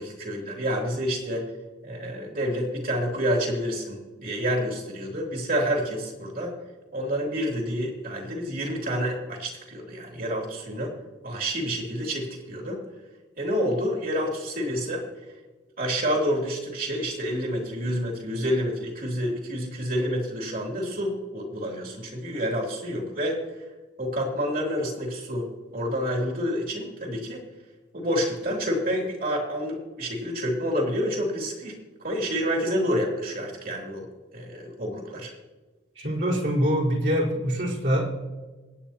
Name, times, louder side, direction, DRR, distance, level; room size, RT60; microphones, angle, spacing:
voice 1, 0.0-1.4 1.8-6.5 6.9-10.9 11.2-12.8 13.4-15.0 15.8-23.4 24.0-25.5 25.7-27.4 27.9-34.1 34.3-35.3, equal, 50° right, -1 dB, 3.1 m, -28 dB
voice 2, 36.0-38.0, equal, 65° right, -5 dB, 4.2 m, -24 dB
25.0 x 9.3 x 2.9 m, 1.2 s
head